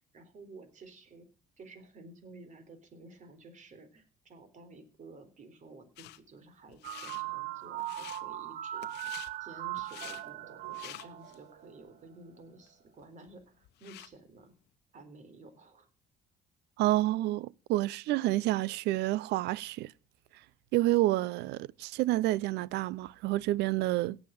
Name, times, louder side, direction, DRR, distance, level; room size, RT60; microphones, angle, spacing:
voice 1, 0.1-1.3 1.6-9.1 9.4-14.5 14.9-15.9, right 3 dB, 45° right, 3.7 m, -53 dB
sound 1, 6.0-6.2 6.7-7.2 7.7-8.2 8.8-9.3 9.8-10.2 10.6-11.4 11.9-12.0 12.7-12.8 13.0-14.1, left 16 dB, 80° left, 0.9 m, -48 dB
sound 2, 6.8-11.9, right 14 dB, 65° right, 1.4 m, -39 dB
voice 2, 16.8-19.9 20.7-24.2, right 16 dB, 80° right, 0.5 m, -29 dB
17.0 x 7.4 x 6.4 m
cardioid pair, 110°, 17 cm